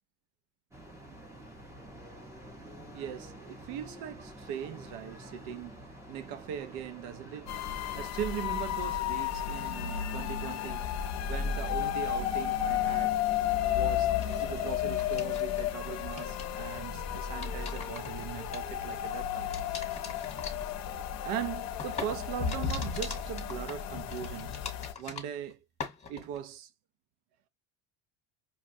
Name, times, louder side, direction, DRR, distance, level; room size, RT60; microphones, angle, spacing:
sound 1, 0.7-8.1, right 1 dB, 5° right, 0.6 m, -48 dB
voice 1, 2.9-5.8 6.1-7.5 8.0-10.9 11.2-13.2 13.7-19.5 21.2-24.5 25.0-25.6 26.1-26.7, right 9 dB, 85° right, 0.6 m, -40 dB
sound 2, 7.5-24.9, left 9 dB, 40° left, 0.6 m, -33 dB
sound 3, 14.1-15.6 15.9-16.6 17.2-19.1 19.5-25.5 25.8-26.4, left 5 dB, 15° left, 1.0 m, -43 dB
5.5 x 2.2 x 2.6 m
cardioid pair, 165°, 41 cm